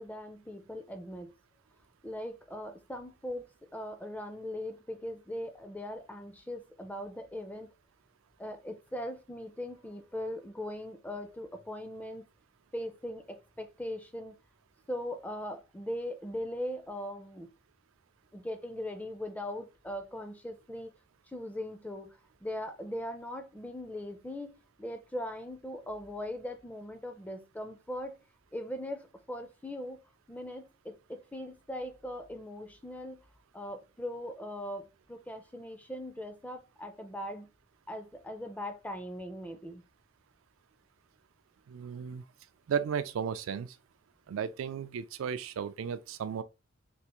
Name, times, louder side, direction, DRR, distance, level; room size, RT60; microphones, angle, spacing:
voice 1, 0.0-1.3 2.0-7.7 8.4-12.2 12.7-14.3 14.9-17.5 18.3-20.9 21.3-28.2 28.5-30.0 30.3-33.2 33.5-37.5 37.9-39.8, left 1 dB, 10° left, 0.4 m, -40 dB
voice 2, 41.7-42.2 42.7-43.7 44.3-46.4, right 7 dB, 75° right, 0.3 m, -34 dB
3.3 x 2.4 x 2.9 m
head